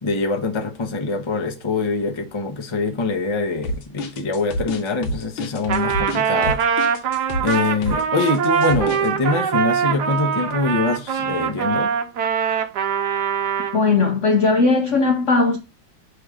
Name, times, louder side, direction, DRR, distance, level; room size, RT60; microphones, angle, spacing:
voice 1, 0.0-6.6 7.4-11.9, left 3 dB, 30° left, 0.5 m, -24 dB
sound 1, 3.6-9.1, left 1 dB, 85° left, 1.7 m, -28 dB
Trumpet, 5.7-13.8, right 7 dB, 65° right, 1.2 m, -22 dB
voice 2, 13.7-15.6, left 3 dB, 65° left, 0.7 m, -18 dB
6.4 x 3.2 x 4.9 m
omnidirectional pair, 2.2 m